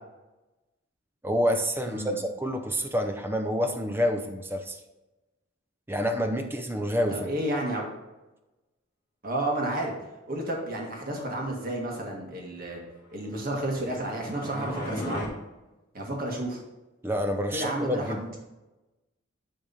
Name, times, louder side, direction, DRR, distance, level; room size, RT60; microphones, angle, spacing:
voice 1, 1.2-4.8 5.9-7.3 17.0-18.2, equal, 10° right, 6 dB, 0.6 m, -28 dB
voice 2, 1.9-2.2 7.1-7.9 9.2-9.9 10.3-12.8 13.1-15.3 15.9-16.6 17.5-18.4, right 1 dB, 45° right, -1 dB, 1.6 m, -31 dB
sound 1, 13.3-15.3, equal, 20° left, 2.0 m, -36 dB
10.5 x 3.5 x 4.1 m, 1.1 s
head